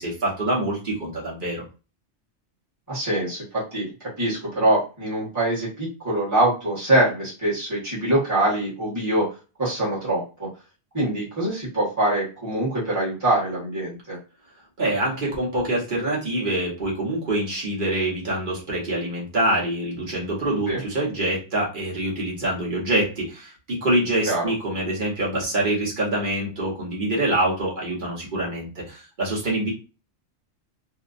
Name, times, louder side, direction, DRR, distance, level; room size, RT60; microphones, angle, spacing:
voice 1, 0.0-1.6 14.8-29.7, right 1 dB, 50° right, -4 dB, 1.1 m, -25 dB
voice 2, 2.9-9.3 9.6-10.5 10.9-14.2 20.7-20.8 24.2-24.4, right 1 dB, 15° right, -8 dB, 1.2 m, -24 dB
2.8 x 2.1 x 2.5 m, 0.33 s
omnidirectional pair, 1.2 m